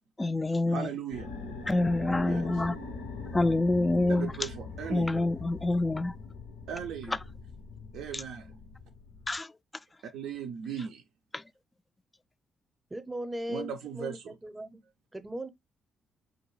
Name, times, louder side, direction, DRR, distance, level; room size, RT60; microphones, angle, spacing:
voice 1, 0.2-0.9 1.7-2.8 3.3-4.3 4.9-6.1 8.1-8.2 9.3-9.5 11.3-11.4, left 2 dB, 20° left, 0.3 m, -27 dB
voice 2, 0.7-1.3 2.2-2.4 4.1-5.1 6.7-7.2 7.9-8.5 10.1-11.0 13.5-14.3, right 8 dB, 65° right, 0.4 m, -37 dB
sound 1, 1.1-9.4, left 3 dB, 75° left, 0.6 m, -42 dB
voice 3, 12.9-14.8 15.1-15.5, equal, 20° right, 0.7 m, -38 dB
5.0 x 2.2 x 3.1 m
figure-of-eight pair, 40°, 0 cm